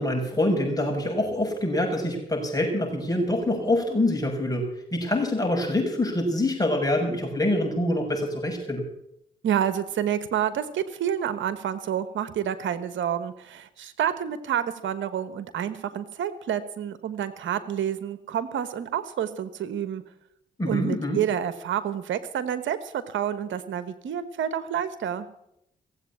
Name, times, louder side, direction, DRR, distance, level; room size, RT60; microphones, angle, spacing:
voice 1, 0.0-4.6 4.9-8.8 20.6-21.2, left 1 dB, 20° left, 1 dB, 6.4 m, -25 dB
voice 2, 9.4-20.0 20.7-25.3, right 9 dB, 80° right, 13 dB, 1.2 m, -29 dB
17.0 x 8.1 x 8.5 m, 0.78 s
supercardioid pair, 50°, 19 cm